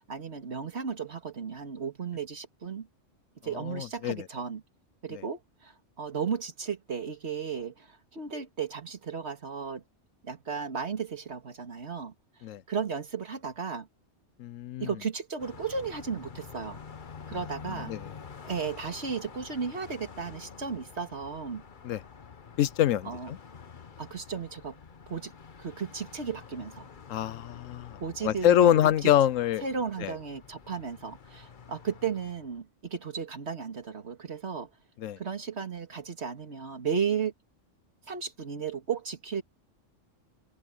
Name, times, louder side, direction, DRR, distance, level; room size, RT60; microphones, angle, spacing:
voice 1, 0.0-2.9 3.4-4.6 5.0-9.8 10.2-12.1 12.7-13.9 14.8-16.8 17.3-17.9 18.4-21.6 23.1-23.3 24.0-24.8 25.1-25.3 25.6-26.9 28.0-29.1 29.6-34.7 35.2-37.3 38.1-39.4, right 6 dB, 60° right, 2.2 m, -34 dB
voice 2, 3.6-4.3 5.1-5.2 12.4-12.6 14.4-14.9 17.9-18.1 21.8-22.0 22.6-23.4 27.1-29.6 30.0-30.1 35.0-35.2, left 11 dB, 85° left, 1.0 m, -25 dB
Car passing by, 15.4-32.6, left 6 dB, 40° left, 1.1 m, -48 dB
open air
omnidirectional pair, 1.3 m